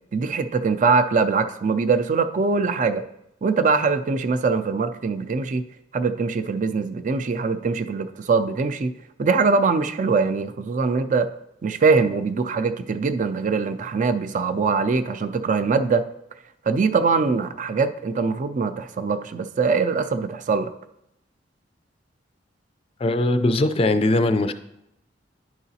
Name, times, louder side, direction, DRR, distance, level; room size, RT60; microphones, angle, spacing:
voice 1, 0.1-3.0 3.4-5.6 5.9-8.9 9.2-11.3 11.6-16.0 16.7-20.7, right 4 dB, 45° right, 9 dB, 0.4 m, -22 dB
voice 2, 23.0-24.5, left 2 dB, 30° left, 9 dB, 0.4 m, -20 dB
11.0 x 4.8 x 2.8 m, 0.81 s
head